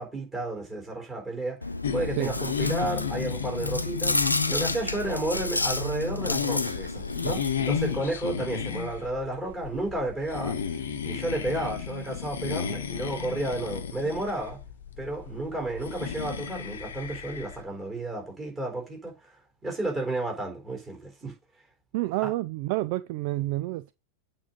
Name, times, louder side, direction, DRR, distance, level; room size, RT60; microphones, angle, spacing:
voice 1, 0.0-1.6 1.9-10.6 11.0-14.6 15.0-19.3 19.6-21.3 22.2-22.3, right 2 dB, 15° right, 4.1 m, -32 dB
Chewing mastication, 1.6-8.0, left 2 dB, 85° left, 0.6 m, -30 dB
sound 1, 1.8-17.6, left 8 dB, 65° left, 1.0 m, -33 dB
voice 2, 21.9-23.9, right 18 dB, 45° right, 0.3 m, -29 dB
8.6 x 3.8 x 5.2 m
figure-of-eight pair, 90°, 0 cm